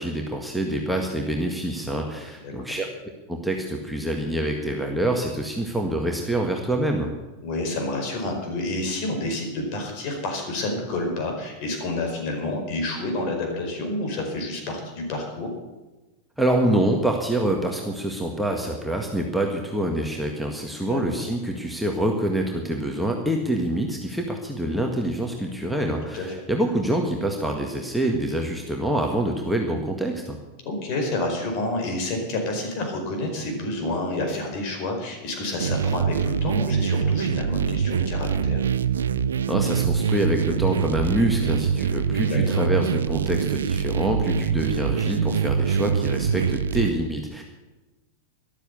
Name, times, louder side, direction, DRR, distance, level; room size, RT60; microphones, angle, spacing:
voice 1, 0.0-2.9 3.3-7.1 16.4-30.4 39.5-47.4, right 1 dB, ahead, 0 dB, 1.8 m, -26 dB
voice 2, 7.4-15.5 20.8-21.0 26.1-26.3 30.6-38.6 42.2-42.6, left 2 dB, 40° left, 3 dB, 4.9 m, -29 dB
sound 1, 35.6-46.9, right 7 dB, 65° right, 0.6 m, -24 dB
13.5 x 12.5 x 6.9 m, 1.1 s
figure-of-eight pair, 90°, 0 cm